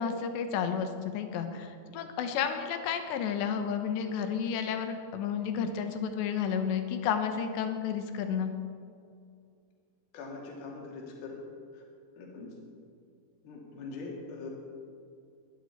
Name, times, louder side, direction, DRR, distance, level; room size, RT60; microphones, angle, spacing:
voice 1, 0.0-8.5, left 7 dB, 80° left, 7 dB, 3.3 m, -31 dB
voice 2, 10.1-11.4 11.7-11.8 12.2-12.5 13.4-14.5, left 3 dB, 60° left, -2 dB, 4.1 m, -42 dB
21.0 x 11.0 x 4.6 m, 2.4 s
omnidirectional pair, 5.0 m